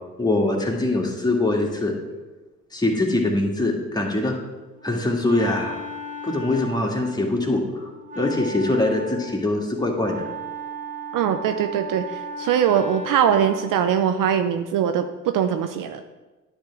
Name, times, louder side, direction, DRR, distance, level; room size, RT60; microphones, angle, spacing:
voice 1, 0.2-1.9 2.7-4.4 4.8-5.8 6.2-7.9 8.1-10.3, left 2 dB, 10° left, 0 dB, 1.9 m, -23 dB
Wind instrument woodwind instrument, 4.7-13.8, right 1 dB, 20° right, 1.2 m, -36 dB
voice 2, 11.1-16.0, right 8 dB, 55° right, 8 dB, 0.6 m, -22 dB
10.0 x 3.5 x 6.1 m, 1.2 s
hypercardioid pair, 45°, 39 cm